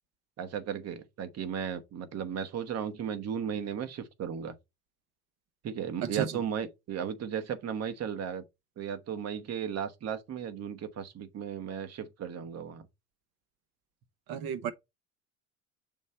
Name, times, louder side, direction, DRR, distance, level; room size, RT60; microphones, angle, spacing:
voice 1, 0.4-4.5 5.6-8.4 8.8-12.9, right 8 dB, 35° right, 1.1 m, -35 dB
voice 2, 6.0-6.4 14.3-14.7, right 8 dB, 55° right, 1.2 m, -33 dB
7.2 x 3.2 x 4.3 m
figure-of-eight pair, 70°, 45 cm